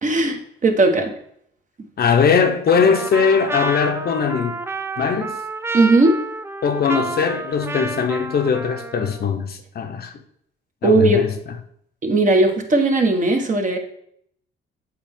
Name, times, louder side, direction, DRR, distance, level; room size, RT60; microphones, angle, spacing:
voice 1, 0.0-1.1 5.7-6.2 10.8-11.3 12.0-13.8, right 2 dB, 40° right, 1.1 m, -17 dB
voice 2, 2.0-4.5 5.0-5.3 6.6-10.1 10.8-11.3, left 6 dB, 50° left, 0.8 m, -20 dB
Trumpet, 2.7-9.3, right 3 dB, 10° right, 0.4 m, -30 dB
7.6 x 4.3 x 3.6 m
cardioid pair, 90°, 20 cm